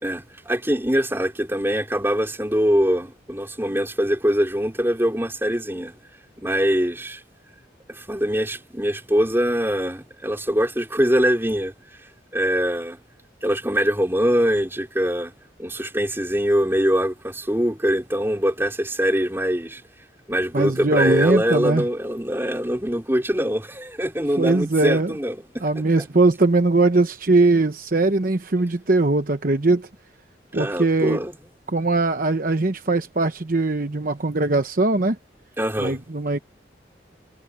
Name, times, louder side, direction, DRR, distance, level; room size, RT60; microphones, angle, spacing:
voice 1, 0.0-5.9 6.4-7.2 7.9-11.7 12.3-13.0 13.4-15.3 15.6-19.8 20.3-25.7 30.5-31.3 35.6-36.0, equal, 15° right, 4.3 m, -23 dB
voice 2, 20.5-21.8 24.4-25.1 25.6-29.9 30.5-31.2 31.7-35.2 35.8-36.4, right 2 dB, 50° right, 0.9 m, -20 dB
head